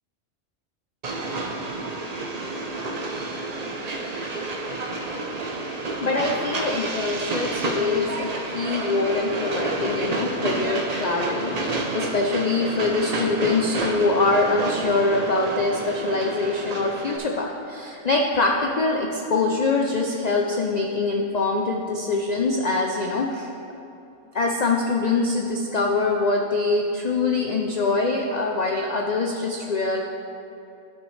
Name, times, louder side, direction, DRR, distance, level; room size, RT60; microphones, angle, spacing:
Train, 1.0-17.2, right 2 dB, 40° right, 0.6 m, -29 dB
voice 1, 6.0-23.5 24.3-30.0, left 3 dB, 70° left, 0 dB, 0.4 m, -24 dB
11.5 x 6.1 x 3.2 m, 2.7 s
omnidirectional pair, 1.4 m